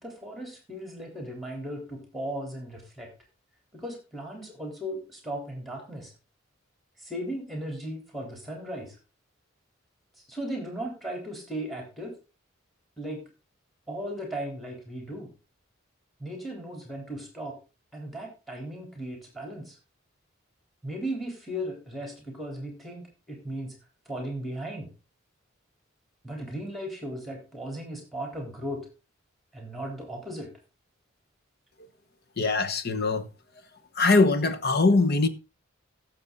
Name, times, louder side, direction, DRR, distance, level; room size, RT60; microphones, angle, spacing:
voice 1, 0.0-3.1 3.7-6.1 7.0-8.9 10.3-12.1 13.0-13.2 13.9-15.3 16.2-17.6 17.9-19.8 20.8-23.7 24.1-24.9 26.2-28.9 29.5-30.5, right 1 dB, ahead, 3.8 m, -36 dB
voice 2, 32.4-33.2 34.0-35.3, left 3 dB, 50° left, 1.1 m, -22 dB
14.5 x 7.2 x 3.9 m
head